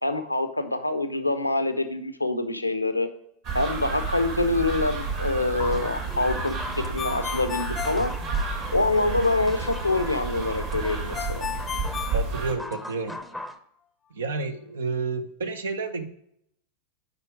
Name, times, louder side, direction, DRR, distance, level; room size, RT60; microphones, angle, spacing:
voice 1, 0.0-3.1 3.5-8.1 8.7-11.5, left 2 dB, 90° left, 10 dB, 0.6 m, -25 dB
sound 1, 3.4-12.5, right 4 dB, 50° right, 2.0 m, -31 dB
sound 2, 5.6-13.6, left 1 dB, ahead, 0.7 m, -40 dB
Ringtone, 7.0-8.9 11.1-13.0, left 8 dB, 25° left, 0.4 m, -34 dB
voice 2, 12.1-13.2 14.1-16.1, right 4 dB, 70° right, 10 dB, 0.7 m, -30 dB
8.3 x 4.9 x 4.9 m, 0.74 s
figure-of-eight pair, 85°, 0 cm